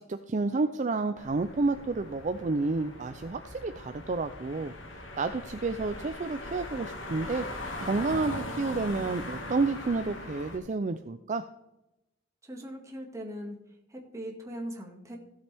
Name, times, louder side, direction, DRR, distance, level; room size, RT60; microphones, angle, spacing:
voice 1, 0.0-7.5 7.8-11.4, right 3 dB, 40° right, 9 dB, 0.5 m, -30 dB
sound 1, 1.2-10.6, left 2 dB, 75° left, 2.0 m, -40 dB
voice 2, 12.4-15.2, equal, 15° right, 0 dB, 2.0 m, -40 dB
15.5 x 7.5 x 3.5 m, 0.88 s
head